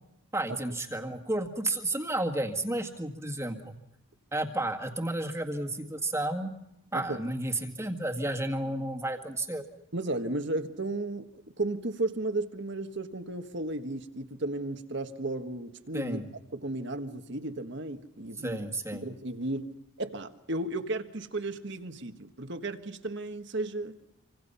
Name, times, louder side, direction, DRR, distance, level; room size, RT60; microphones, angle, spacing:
voice 1, 0.3-3.7 4.3-6.5 6.9-9.6 15.9-16.2 18.4-19.0, right 1 dB, 15° right, 1.9 m, -32 dB
voice 2, 6.9-7.2 9.9-11.3 11.6-16.2 16.5-18.6 18.9-24.0, right 2 dB, 55° right, 1.5 m, -34 dB
27.0 x 25.0 x 5.7 m
head